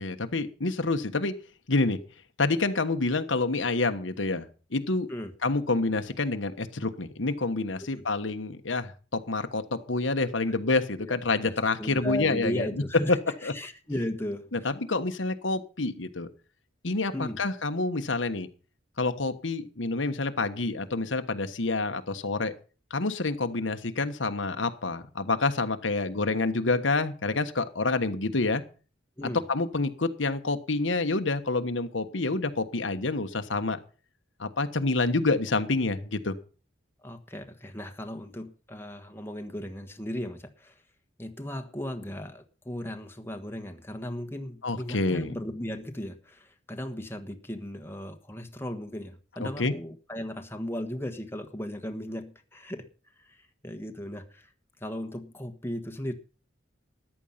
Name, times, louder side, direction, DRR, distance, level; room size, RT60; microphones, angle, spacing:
voice 1, 0.0-1.3 1.7-2.0 2.4-5.1 5.4-12.7 13.1-13.2 13.4-13.5 14.5-16.3 16.8-18.5 19.0-22.5 22.9-28.6 29.5-33.8 34.4-36.3 44.6-45.4 49.4-49.7, left 3 dB, 85° left, 8 dB, 1.3 m, -28 dB
voice 2, 11.4-14.7 17.1-17.4 29.2-29.4 37.0-40.8 41.2-52.9 53.2-54.5 54.8-56.1, left 1 dB, 10° left, 6 dB, 1.3 m, -36 dB
14.0 x 10.0 x 5.7 m, 0.38 s
head